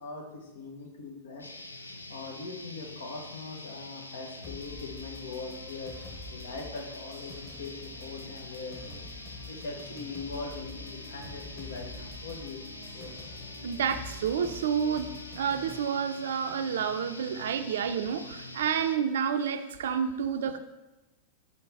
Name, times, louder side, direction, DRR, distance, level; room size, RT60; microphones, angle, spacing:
voice 1, 0.0-1.5 2.1-9.0 9.5-13.3, left 3 dB, 65° left, 2 dB, 1.2 m, -41 dB
sound 1, 1.4-19.0, left 2 dB, 80° left, 0.5 m, -45 dB
sound 2, 4.4-15.9, left 3 dB, 15° left, 1.3 m, -47 dB
voice 2, 13.6-15.1 15.3-20.6, right 7 dB, 60° right, 9 dB, 0.5 m, -29 dB
5.6 x 5.6 x 4.7 m, 1.0 s
figure-of-eight pair, 90°, 0 cm